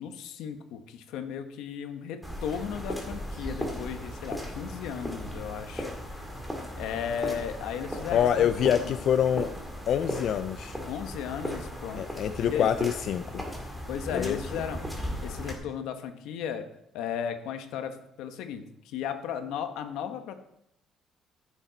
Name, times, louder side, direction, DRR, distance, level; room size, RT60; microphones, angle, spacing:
voice 1, 0.0-5.9 6.8-9.0 10.9-12.1 12.4-12.7 13.9-14.8 15.2-16.7 16.9-20.4, left 8 dB, 90° left, 8 dB, 1.1 m, -35 dB
sound 1, 2.2-15.5, equal, ahead, 2.1 m, -37 dB
voice 2, 8.1-9.5 9.9-10.8 12.0-13.4 14.1-14.4, left 9 dB, 55° left, 9 dB, 0.4 m, -26 dB
14.5 x 7.2 x 4.0 m, 0.78 s
cardioid pair, 145°, 0 cm